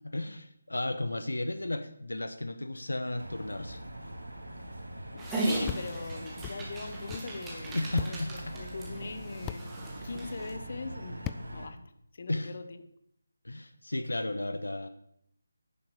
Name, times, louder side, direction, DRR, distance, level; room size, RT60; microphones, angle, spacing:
voice 1, 0.0-3.8 7.7-8.6 12.3-12.5 13.4-14.9, left 2 dB, 85° left, 10 dB, 1.0 m, -34 dB
sound 1, 3.2-11.7, right 1 dB, 85° right, 2.4 m, -43 dB
voice 2, 5.1-9.7 10.0-11.2 11.5-11.8 12.1-12.8, left 4 dB, 50° left, 10 dB, 1.1 m, -41 dB
Dog, 5.2-10.5, right 2 dB, 10° right, 2.1 m, -37 dB
sound 2, 5.6-5.8 6.4-6.6 7.1-7.3 8.0-8.1 9.5-9.6 11.2-11.4, left 13 dB, 15° left, 0.4 m, -36 dB
10.0 x 7.4 x 6.6 m, 0.73 s
figure-of-eight pair, 155°, 0 cm